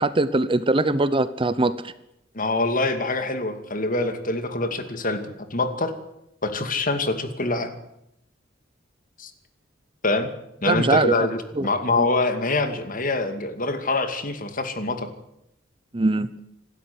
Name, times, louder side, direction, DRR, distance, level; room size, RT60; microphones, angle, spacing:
voice 1, 0.0-1.9 10.7-11.1 11.6-11.7 12.0-12.1 15.9-16.3, right 2 dB, 25° right, 15 dB, 0.8 m, -21 dB
voice 2, 2.3-5.9 6.4-7.7 9.2-9.3 10.0-10.3 10.6-15.1, left 2 dB, 45° left, 8 dB, 2.5 m, -25 dB
27.0 x 12.5 x 9.7 m, 0.82 s
head